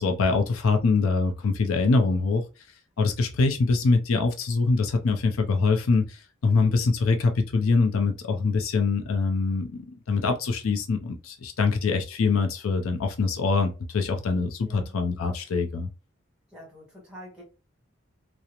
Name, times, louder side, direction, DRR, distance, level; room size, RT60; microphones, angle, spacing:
voice 1, 0.0-2.4 3.0-15.9, left 4 dB, 85° left, 0.5 m, -24 dB
voice 2, 14.6-14.9 16.5-17.4, equal, 5° right, 1.2 m, -46 dB
2.8 x 2.0 x 2.4 m
head